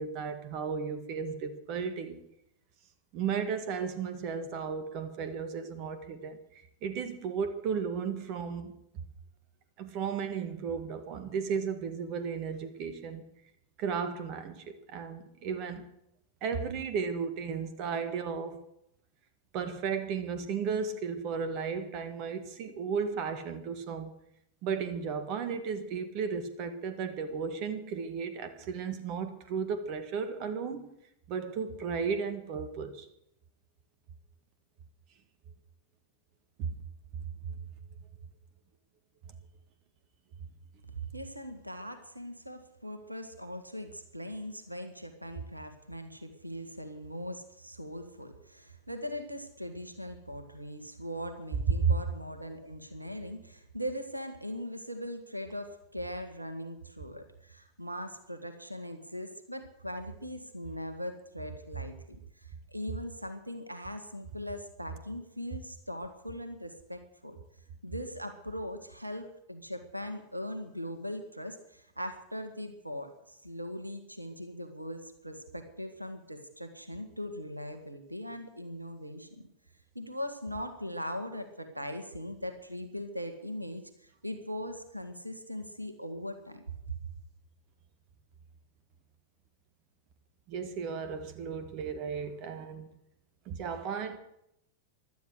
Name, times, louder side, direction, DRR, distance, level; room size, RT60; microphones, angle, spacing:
voice 1, 0.0-2.3 3.1-8.7 9.8-13.2 13.8-15.9 16.4-18.6 19.5-24.1 24.6-30.9 31.3-33.1 36.6-36.7 37.5-37.6 51.8-51.9 90.5-92.9 93.4-94.2, right 6 dB, 40° right, 1.7 m, -34 dB
voice 2, 40.8-67.4 67.8-79.3 80.0-86.6 86.9-87.0, equal, 85° right, 1.7 m, -40 dB
16.0 x 12.0 x 6.5 m
figure-of-eight pair, 90°, 0 cm